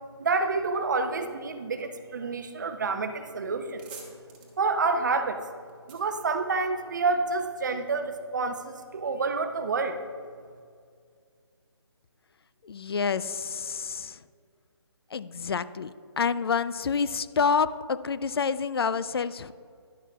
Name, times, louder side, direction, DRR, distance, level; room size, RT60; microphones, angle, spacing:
voice 1, 0.2-4.1 4.6-5.4 5.9-10.0, right 4 dB, 40° right, 8 dB, 0.6 m, -28 dB
sound 1, 3.7-7.1, right 5 dB, 20° right, 1.2 m, -50 dB
voice 2, 12.6-14.2 15.1-19.5, left 5 dB, 60° left, 15 dB, 0.4 m, -28 dB
11.0 x 11.0 x 2.3 m, 2.2 s
hypercardioid pair, 165°, 14 cm